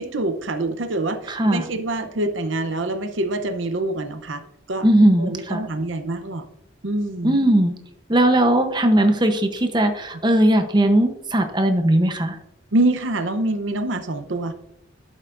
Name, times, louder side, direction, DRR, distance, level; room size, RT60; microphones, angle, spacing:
voice 1, 0.0-4.4 4.7-4.9 5.2-6.4 6.8-7.4 12.7-14.5, right 2 dB, 80° right, 8 dB, 0.8 m, -25 dB
voice 2, 1.3-1.6 4.8-5.6 7.2-7.7 8.1-12.4, right 1 dB, 25° right, 7 dB, 0.8 m, -18 dB
11.5 x 8.2 x 2.6 m, 0.79 s
head